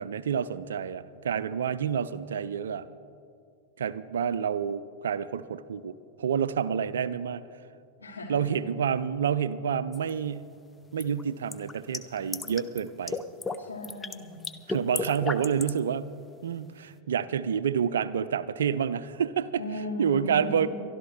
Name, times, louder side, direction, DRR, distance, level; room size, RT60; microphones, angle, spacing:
voice 1, 0.0-2.9 3.8-7.4 8.3-10.5 10.9-13.2 14.7-16.1 16.4-19.6 20.0-20.7, right 7 dB, 65° right, 16 dB, 0.4 m, -28 dB
voice 2, 8.0-8.5 13.6-14.5 19.6-20.7, left 1 dB, 80° left, -2 dB, 2.4 m, -37 dB
sound 1, 9.9-10.1 11.0-12.8 13.1-13.6 13.8-14.1 14.4-15.8, left 3 dB, 10° left, 0.6 m, -33 dB
23.5 x 12.0 x 3.2 m, 2.3 s
figure-of-eight pair, 90°, 0 cm